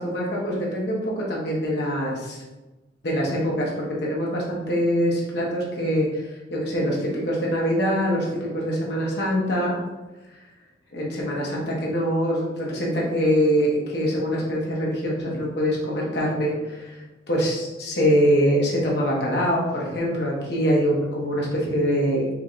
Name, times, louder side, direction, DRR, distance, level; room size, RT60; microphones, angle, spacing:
voice 1, 0.0-2.4 3.0-6.2 6.5-9.8 10.9-16.9 17.3-22.4, equal, 60° left, -4 dB, 0.9 m, -24 dB
4.7 x 3.6 x 2.5 m, 1.1 s
head